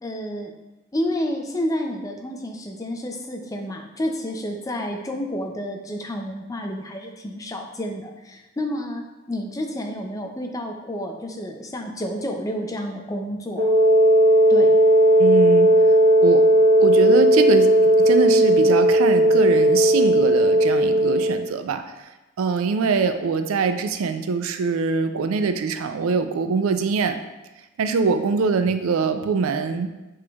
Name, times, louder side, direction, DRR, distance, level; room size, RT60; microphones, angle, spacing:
voice 1, 0.0-0.5 0.9-13.7 14.5-14.8, equal, 15° left, 3 dB, 0.4 m, -30 dB
Wind instrument woodwind instrument, 13.6-21.4, right 1 dB, 35° right, 0.7 m, -16 dB
voice 2, 15.2-15.8 16.2-16.5 16.8-21.8 22.4-27.2 27.8-29.9, right 5 dB, 80° right, 9 dB, 0.4 m, -23 dB
6.0 x 3.1 x 2.3 m, 1.1 s
head